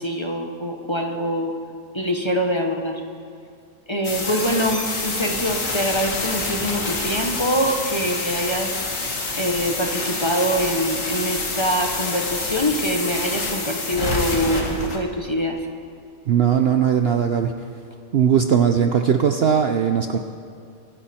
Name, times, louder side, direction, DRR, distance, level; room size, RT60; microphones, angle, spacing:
voice 1, 0.0-1.5 1.9-3.0 3.9-15.6, equal, 20° left, 3 dB, 1.0 m, -24 dB
sound 1, 4.0-15.0, left 3 dB, 65° left, 2.1 m, -27 dB
voice 2, 16.3-17.5 18.1-20.2, right 8 dB, 55° right, 6 dB, 0.7 m, -19 dB
24.0 x 10.0 x 4.3 m, 2.5 s
omnidirectional pair, 1.5 m